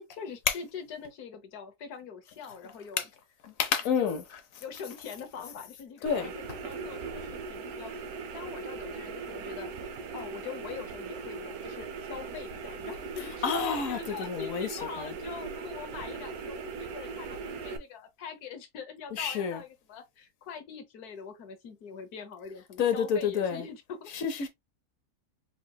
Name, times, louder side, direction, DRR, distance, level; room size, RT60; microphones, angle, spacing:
voice 1, 0.0-3.0 4.0-4.2 4.6-7.9 8.3-9.7 10.1-24.1 24.4-24.5, left 6 dB, 85° left, 1.4 m, -43 dB
voice 2, 3.4-4.2 6.0-6.3 13.2-15.1 19.1-19.6 22.8-23.7 24.1-24.5, left 7 dB, 65° left, 1.1 m, -29 dB
sound 1, 6.1-17.8, right 5 dB, 80° right, 1.2 m, -39 dB
4.8 x 3.0 x 2.2 m
omnidirectional pair, 1.6 m